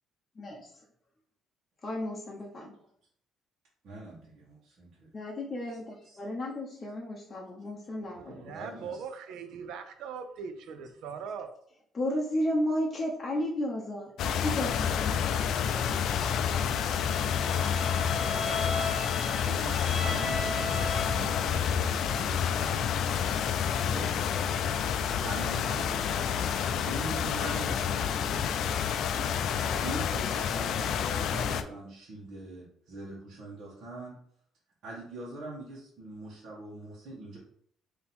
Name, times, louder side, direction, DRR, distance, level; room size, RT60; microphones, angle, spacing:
voice 1, 0.4-0.8 1.8-2.8 5.1-8.6 11.9-15.4, left 1 dB, 25° left, -2 dB, 0.7 m, -33 dB
voice 2, 3.8-5.1 6.0-6.2 8.5-9.0 17.4-17.9 19.4-23.4 23.8-24.1 25.2-26.4 26.8-28.6 29.8-34.2 34.8-37.4, right 2 dB, 60° right, -6 dB, 1.3 m, -43 dB
voice 3, 8.1-11.5, right 6 dB, 80° right, 8 dB, 0.6 m, -40 dB
sound 1, 14.2-31.6, left 8 dB, 65° left, 0.3 m, -29 dB
Bowed string instrument, 16.9-21.5, left 2 dB, ahead, 1.4 m, -36 dB
3.6 x 2.8 x 4.2 m, 0.65 s
cardioid pair, 130°, 0 cm